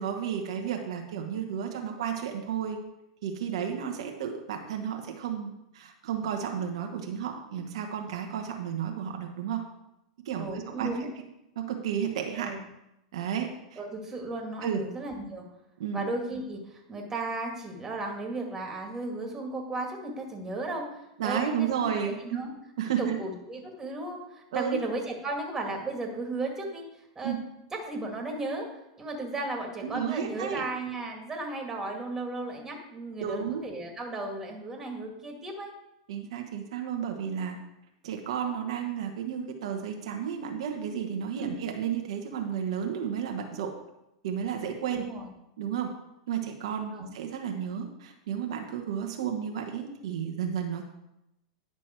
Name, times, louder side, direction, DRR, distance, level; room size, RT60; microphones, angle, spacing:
voice 1, 0.0-2.8 3.2-9.6 10.2-11.1 11.5-12.5 13.1-13.8 14.6-14.8 15.8-16.0 21.2-22.5 22.8-23.2 24.5-24.8 27.2-27.4 29.8-30.6 33.2-33.6 36.1-37.6 38.0-43.7 44.2-45.0 45.6-45.9 46.3-50.8, right 8 dB, 75° right, 3 dB, 1.2 m, -32 dB
voice 2, 10.4-11.1 12.4-12.6 13.8-15.5 15.9-21.9 22.2-22.5 23.0-27.4 27.8-28.7 29.0-35.7 41.4-41.6 44.9-45.3 46.9-47.1, right 2 dB, 15° right, 1 dB, 2.2 m, -35 dB
10.5 x 6.0 x 4.5 m, 0.88 s
hypercardioid pair, 115°, 3 cm